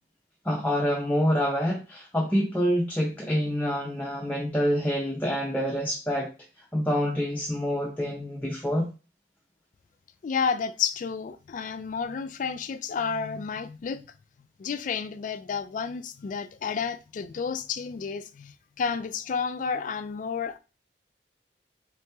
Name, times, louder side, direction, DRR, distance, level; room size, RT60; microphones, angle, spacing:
voice 1, 0.4-6.3 6.7-8.9, equal, 10° left, 0.6 m, -26 dB
voice 2, 10.2-14.1 14.6-20.6, left 6 dB, 45° left, 0.3 m, -31 dB
3.6 x 3.0 x 3.3 m
head